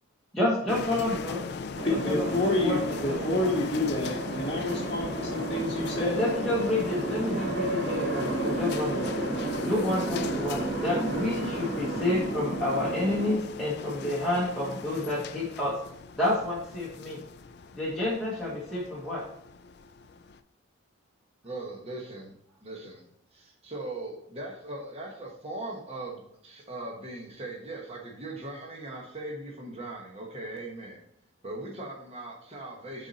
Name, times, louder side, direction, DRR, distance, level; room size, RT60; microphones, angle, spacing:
voice 1, 0.4-1.4 1.9-3.6 6.0-9.2 9.6-15.9 16.2-17.2 17.7-19.3, left 1 dB, ahead, -7 dB, 1.0 m, -29 dB
sound 1, 0.7-20.4, left 5 dB, 50° left, 0.3 m, -40 dB
sound 2, 1.7-13.3, right 2 dB, 55° right, 2.2 m, -32 dB
voice 2, 1.8-6.2, left 2 dB, 25° left, -6 dB, 1.0 m, -29 dB
voice 3, 21.4-22.4 22.6-31.0 31.4-33.1, right 2 dB, 30° right, -1 dB, 1.2 m, -39 dB
7.1 x 4.1 x 4.1 m, 0.73 s
head